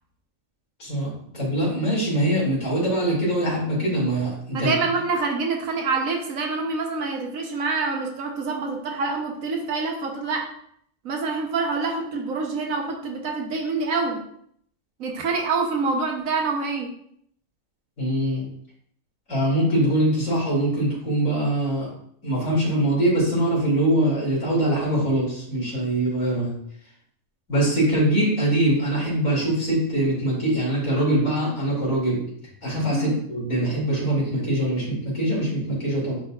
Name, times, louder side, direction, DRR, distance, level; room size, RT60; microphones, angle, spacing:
voice 1, 0.8-4.7 18.0-18.5 19.3-21.9 22.2-26.6 27.5-32.2 32.6-36.2, right 1 dB, 65° left, -5 dB, 3.2 m, -23 dB
voice 2, 4.5-10.5 11.0-14.2 15.0-16.9 32.9-33.2, right 4 dB, 70° right, 2 dB, 1.3 m, -26 dB
10.5 x 4.1 x 2.4 m, 0.67 s
omnidirectional pair, 1.5 m